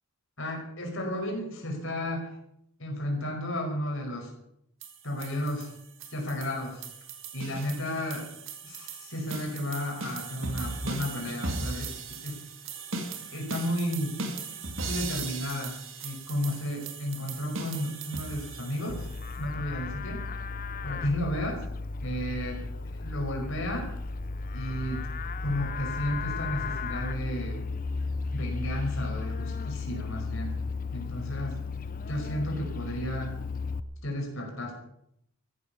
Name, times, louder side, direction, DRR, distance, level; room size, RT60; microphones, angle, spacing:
voice 1, 0.4-2.4 2.8-4.3 5.0-5.7 6.1-6.8 7.3-8.3 8.6-12.4 13.3-14.2 14.8-15.8 16.0-19.1 19.4-20.2 20.8-21.6 22.0-23.9 24.5-25.1 25.4-27.6 28.3-30.6 30.9-31.6 32.1-33.4 34.0-34.7, left 1 dB, 60° left, 1 dB, 5.2 m, -33 dB
sound 1, 4.8-19.4, right 3 dB, 60° right, 2.4 m, -38 dB
Livestock farm animals working animals, 18.9-33.8, left 4 dB, 40° left, 0.6 m, -34 dB
15.0 x 12.0 x 7.0 m, 0.75 s
head